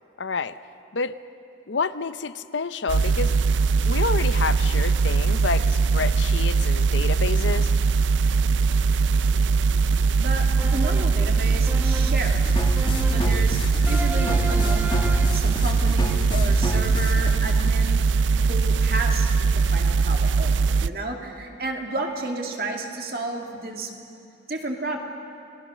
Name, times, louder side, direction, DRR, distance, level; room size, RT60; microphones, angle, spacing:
voice 1, 0.2-0.6 0.9-1.2 1.7-3.4 3.8-7.7, left 4 dB, 85° left, 13 dB, 0.7 m, -29 dB
sound 1, 2.9-20.9, right 4 dB, 80° right, 0.4 m, -21 dB
voice 2, 10.2-12.4 13.1-18.0 18.4-19.3 19.5-23.9 24.5-25.0, right 2 dB, 55° right, 2 dB, 2.5 m, -32 dB
sound 2, 10.6-11.2 11.7-12.3 12.8-13.4 13.9-15.5, equal, 10° right, 0.9 m, -34 dB
sound 3, 12.2-17.3, left 1 dB, 25° left, 1.7 m, -27 dB
29.0 x 20.5 x 6.3 m, 2.7 s
head